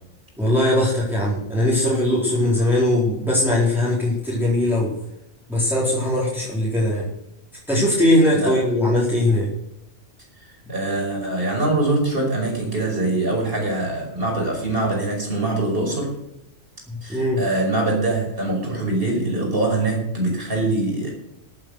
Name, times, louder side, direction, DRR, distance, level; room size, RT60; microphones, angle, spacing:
voice 1, 0.4-4.9 5.5-7.1 7.7-9.5 17.1-17.4, left 1 dB, ahead, -7 dB, 4.2 m, -20 dB
voice 2, 8.3-8.6 10.7-16.2 17.0-21.1, right 2 dB, 45° right, 0 dB, 5.7 m, -23 dB
15.5 x 8.8 x 6.6 m, 0.81 s
omnidirectional pair, 1.4 m